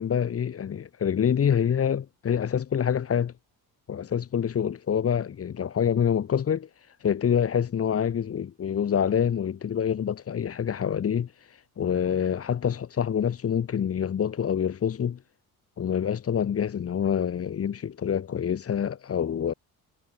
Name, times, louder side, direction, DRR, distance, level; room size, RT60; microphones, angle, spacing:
voice 1, 0.0-3.3 3.9-6.7 7.0-11.3 11.8-15.2 15.8-19.5, left 8 dB, 40° left, 4.0 m, -26 dB
cardioid pair, 155°, 37 cm